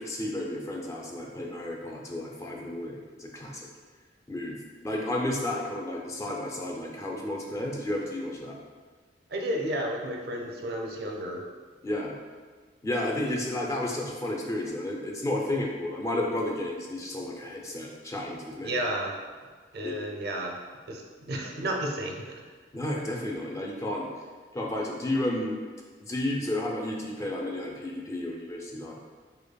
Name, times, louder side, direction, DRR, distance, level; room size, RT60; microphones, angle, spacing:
voice 1, 0.0-3.7 4.3-8.6 11.8-12.1 12.8-18.8 19.8-19.9 22.7-24.1 24.5-25.6 26.0-28.9, left 1 dB, 20° left, -1 dB, 0.4 m, -32 dB
voice 2, 9.3-11.4 18.6-19.1 19.7-20.6 20.9-22.2, right 1 dB, 65° right, 1 dB, 0.5 m, -32 dB
5.1 x 2.2 x 2.2 m, 1.5 s
head